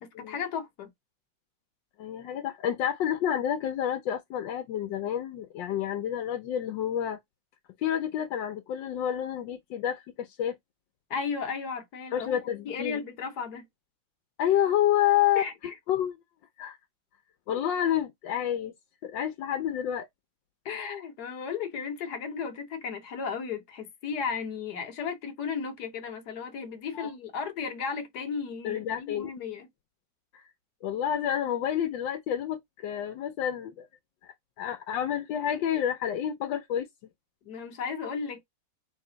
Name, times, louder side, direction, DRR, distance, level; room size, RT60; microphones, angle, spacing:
voice 1, 0.0-0.9 11.1-12.4 12.6-13.7 15.4-15.7 20.6-29.7 37.5-38.4, left 6 dB, 65° left, 1.3 m, -35 dB
voice 2, 2.0-7.2 7.8-10.6 12.1-13.0 14.4-15.4 15.9-16.1 16.6-16.8 17.5-18.7 19.0-20.1 26.9-27.1 28.6-29.3 30.3-30.4 30.8-33.9 34.2-36.9, left 10 dB, 85° left, 1.4 m, -29 dB
3.3 x 3.2 x 3.8 m
omnidirectional pair, 1.9 m